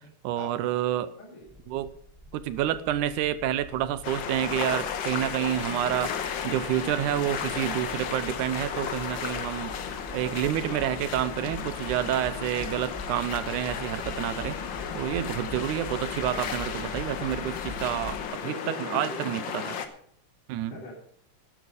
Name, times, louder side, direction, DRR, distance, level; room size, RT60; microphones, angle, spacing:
voice 1, 0.2-1.1 1.7-1.9 2.3-6.1 6.4-9.8 10.1-14.6 14.9-19.8 20.5-20.7, right 12 dB, 90° right, 14 dB, 2.3 m, -29 dB
voice 2, 1.2-1.5 13.4-13.8 18.3-19.8 20.6-20.9, left 2 dB, 80° left, -5 dB, 4.8 m, -42 dB
sound 1, 1.5-18.3, left 1 dB, 10° right, 2.4 m, -44 dB
sound 2, 4.0-19.9, left 7 dB, 60° left, 1.2 m, -34 dB
12.5 x 11.0 x 5.3 m, 0.63 s
omnidirectional pair, 3.5 m